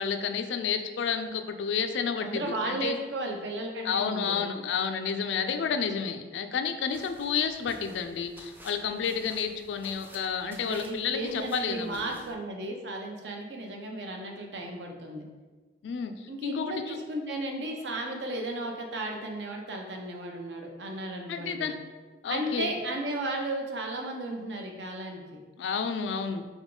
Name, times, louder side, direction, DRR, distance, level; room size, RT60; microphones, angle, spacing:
voice 1, 0.0-3.0 3.8-12.1 15.8-17.0 21.3-21.8 22.2-22.7 25.6-26.4, left 6 dB, 75° left, 7 dB, 0.4 m, -31 dB
voice 2, 2.2-4.5 10.5-15.3 16.3-21.7 22.3-25.2, right 1 dB, 70° right, 2 dB, 0.7 m, -34 dB
sound 1, 6.9-12.3, right 1 dB, 10° right, 0.4 m, -52 dB
3.8 x 3.5 x 3.7 m, 1.4 s
head